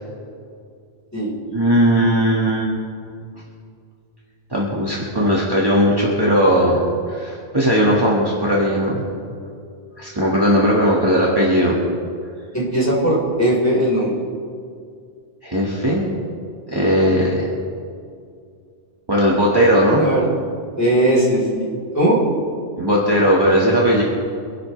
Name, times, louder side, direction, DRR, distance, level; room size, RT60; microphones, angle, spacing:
voice 1, 1.5-2.7 4.5-6.8 7.1-9.0 10.0-11.8 15.4-16.0 16.7-17.5 19.1-20.1 22.8-24.0, equal, 20° right, -5 dB, 1.9 m, -17 dB
voice 2, 12.5-14.1 19.9-20.3 20.8-21.7 21.9-22.2, right 1 dB, 15° left, -6 dB, 4.5 m, -18 dB
26.5 x 12.0 x 3.3 m, 2.3 s
omnidirectional pair, 1.2 m